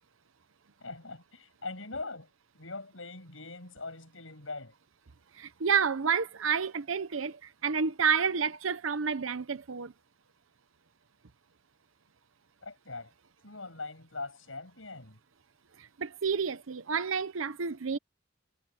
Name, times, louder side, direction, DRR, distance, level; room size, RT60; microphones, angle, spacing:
voice 1, 0.8-2.3 2.5-4.7 12.6-13.1 13.4-15.2, left 3 dB, 80° left, 7.7 m, -42 dB
voice 2, 5.3-9.9 15.8-18.0, right 6 dB, 90° right, 0.8 m, -30 dB
head